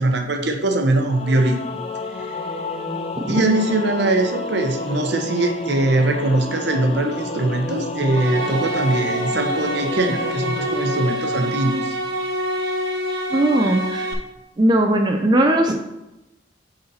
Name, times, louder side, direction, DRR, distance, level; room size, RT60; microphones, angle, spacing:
voice 1, 0.0-1.6 3.3-12.0, right 2 dB, 65° right, 4 dB, 0.8 m, -21 dB
Singing / Musical instrument, 1.1-12.3, left 2 dB, 30° left, 0.5 m, -30 dB
sound 1, 8.1-14.1, right 1 dB, 85° right, 1.1 m, -26 dB
voice 2, 13.3-14.1 14.6-15.7, right 1 dB, 25° right, 3 dB, 0.4 m, -18 dB
8.0 x 4.0 x 4.1 m, 0.95 s
head